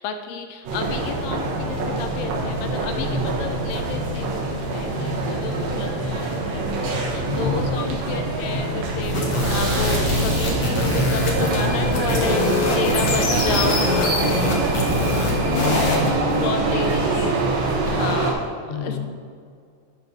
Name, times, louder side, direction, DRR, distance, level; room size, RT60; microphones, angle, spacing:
voice 1, 0.0-4.5 4.7-9.2 9.5-12.4 12.8-14.2 16.4-17.6 17.9-18.4 18.7-19.0, left 5 dB, 80° left, 7 dB, 2.1 m, -31 dB
sound 1, 0.7-18.3, right 2 dB, 80° right, 3.0 m, -24 dB
voice 2, 7.2-7.6 15.4-16.9 18.6-19.0, left 5 dB, 65° right, -2 dB, 2.9 m, -28 dB
sound 2, 9.0-16.1, left 2 dB, 50° left, 1.9 m, -24 dB
11.5 x 4.1 x 6.4 m, 2.2 s
omnidirectional pair, 4.1 m